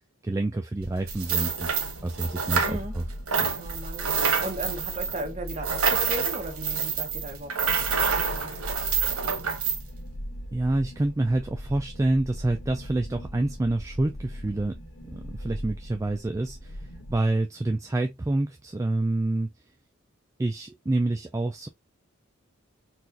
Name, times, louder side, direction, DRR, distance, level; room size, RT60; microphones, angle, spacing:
voice 1, 0.2-3.0 3.4-3.5 10.5-14.8 15.1-19.5 20.4-21.7, right 2 dB, 15° right, 0.3 m, -27 dB
sound 1, 0.8-17.2, equal, 60° left, 1.5 m, -40 dB
sound 2, 1.1-3.0 3.3-9.8, right 6 dB, 85° right, 1.0 m, -27 dB
voice 2, 2.6-2.9 3.6-8.6, right 1 dB, 35° right, 1.1 m, -37 dB
4.1 x 2.5 x 2.7 m
head